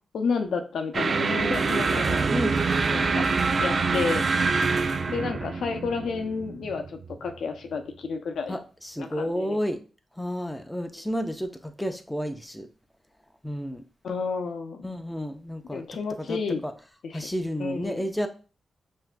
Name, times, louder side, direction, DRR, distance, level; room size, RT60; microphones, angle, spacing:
voice 1, 0.1-2.3 2.9-3.3 3.6-4.3 5.1-6.8 7.2-8.6 9.0-9.6 14.0-14.9 15.7-16.6 17.6-18.0, left 5 dB, 80° left, 5 dB, 0.5 m, -31 dB
sound 1, 0.9-7.4, right 4 dB, 60° right, 0.3 m, -25 dB
voice 2, 8.5-9.8 10.2-12.7 13.4-13.8 14.8-15.8 16.2-16.7 17.1-18.3, equal, 5° left, 6 dB, 0.5 m, -31 dB
5.7 x 2.6 x 2.2 m, 0.36 s
cardioid pair, 65°, 0 cm